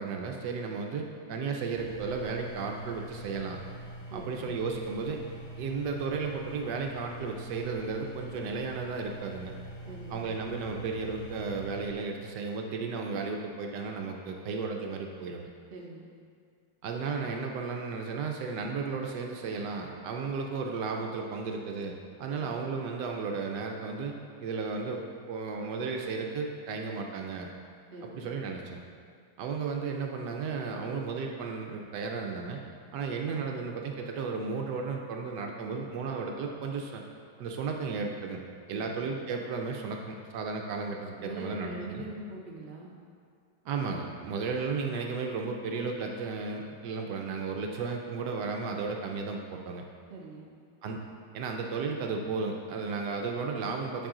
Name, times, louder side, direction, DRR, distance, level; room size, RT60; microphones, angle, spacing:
voice 1, 0.0-3.6 4.1-5.2 5.6-9.5 10.1-15.5 16.8-24.1 24.4-27.5 28.1-28.8 29.4-32.6 32.9-37.0 37.4-38.4 38.7-42.0 43.6-49.8 50.8-51.0 51.3-54.1, right 4 dB, 75° right, 2 dB, 1.2 m, -34 dB
sound 1, 1.8-11.9, right 1 dB, 85° left, 1.5 m, -44 dB
voice 2, 4.1-4.4 9.9-10.2 15.7-16.0 22.3-22.5 27.9-28.2 38.7-39.0 41.2-42.9 50.1-50.5, right 2 dB, 40° right, -2 dB, 0.9 m, -43 dB
8.7 x 5.4 x 3.7 m, 2.3 s
omnidirectional pair, 1.9 m